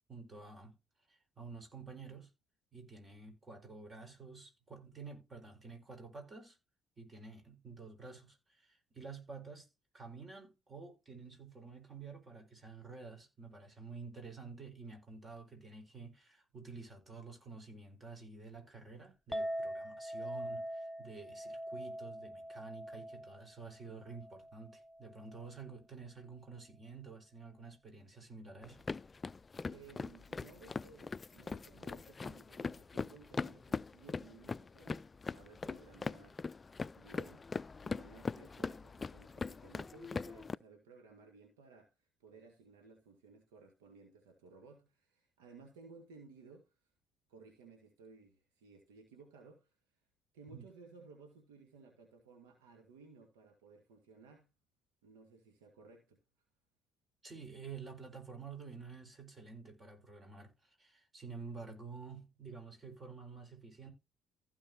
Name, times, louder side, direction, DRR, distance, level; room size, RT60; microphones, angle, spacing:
voice 1, 0.1-0.7 1.1-2.3 2.7-6.6 7.0-9.7 9.9-28.9 50.5-50.6 57.2-63.9, right 4 dB, 35° right, 4.5 m, -50 dB
Chink clink, 19.3-25.6, equal, ahead, 0.8 m, -43 dB
sound 1, 28.6-40.6, left 4 dB, 30° left, 0.4 m, -41 dB
voice 2, 29.7-36.4 37.0-37.5 37.8-46.7 47.3-49.7 50.3-54.5 55.0-56.2, right 4 dB, 80° right, 1.8 m, -58 dB
15.5 x 5.2 x 2.9 m
hypercardioid pair, 50°, 0 cm